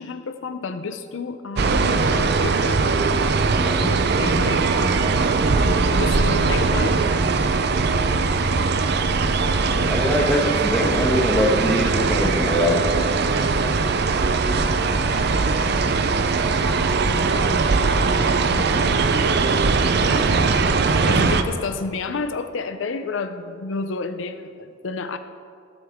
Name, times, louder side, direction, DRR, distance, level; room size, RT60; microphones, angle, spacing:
voice 1, 0.0-2.8 4.2-4.9 5.9-7.0 17.3-17.7 18.5-19.1 21.1-25.2, left 4 dB, 75° left, 10 dB, 0.5 m, -31 dB
sound 1, 1.6-21.4, right 4 dB, 60° right, 0.6 m, -20 dB
voice 2, 3.6-4.0 8.5-8.6 9.4-12.9, equal, 5° left, -1 dB, 1.5 m, -23 dB
18.5 x 8.0 x 3.6 m, 2.3 s
head